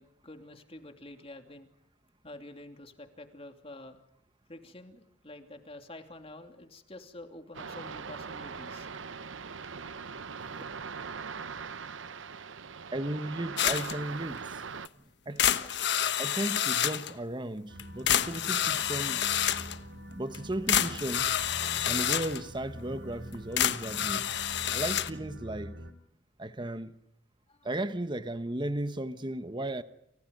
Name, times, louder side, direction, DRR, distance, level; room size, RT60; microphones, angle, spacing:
voice 1, 0.0-1.7 2.2-4.0 4.5-8.9 27.5-27.7, left 1 dB, 30° left, 2.9 m, -48 dB
sound 1, 7.5-14.9, right 5 dB, 80° right, 0.9 m, -41 dB
voice 2, 12.9-14.6 15.3-15.7 16.2-19.2 20.1-21.3 21.8-24.3 24.7-25.8 26.4-26.9 27.6-29.8, right 1 dB, 25° right, 1.1 m, -35 dB
sound 2, 13.6-14.0 14.4-14.5 14.8-14.9 15.4-17.1 17.8-17.9 18.1-19.8 20.3-20.4 20.7-22.4 23.3-25.1, left 10 dB, 60° left, 1.2 m, -28 dB
sound 3, 17.7-25.9, equal, 60° right, 2.6 m, -45 dB
29.5 x 29.0 x 5.3 m
head